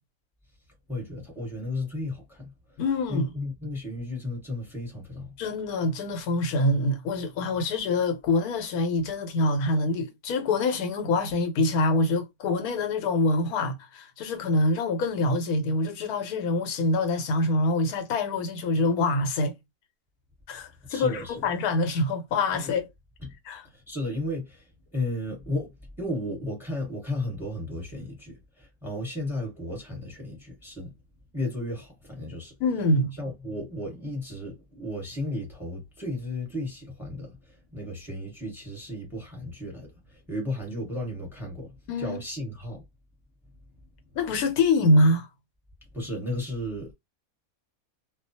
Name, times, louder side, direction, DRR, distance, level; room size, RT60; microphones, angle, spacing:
voice 1, 0.9-2.8 3.1-5.3 20.9-21.4 22.5-22.7 23.2-23.3 23.7-30.9 31.3-32.5 33.1-42.8 45.9-46.9, left 1 dB, ahead, 0.9 m, -34 dB
voice 2, 2.8-3.3 5.4-19.6 20.5-22.9 23.5-23.6 32.6-33.1 41.9-42.2 44.1-45.3, left 2 dB, 85° left, 1.1 m, -25 dB
2.3 x 2.2 x 2.7 m
omnidirectional pair, 1.5 m